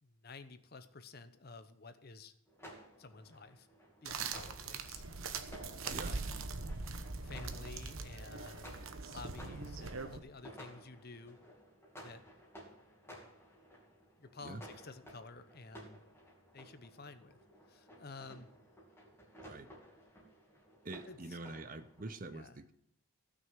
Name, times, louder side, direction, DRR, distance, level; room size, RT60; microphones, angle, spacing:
voice 1, 0.0-2.3 3.0-3.7 4.0-5.0 5.8-6.2 7.2-11.4 12.0-12.2 14.2-16.0 16.5-17.4 17.7-18.5 21.0-21.4 22.3-22.6, left 3 dB, 45° left, 11 dB, 0.8 m, -52 dB
sound 1, 2.5-22.2, equal, 10° left, 2.5 m, -56 dB
sound 2, 4.1-10.2, right 4 dB, 70° right, 1.1 m, -42 dB
voice 2, 20.8-22.7, right 2 dB, 40° right, 11 dB, 0.7 m, -45 dB
16.0 x 6.3 x 7.3 m, 0.70 s
head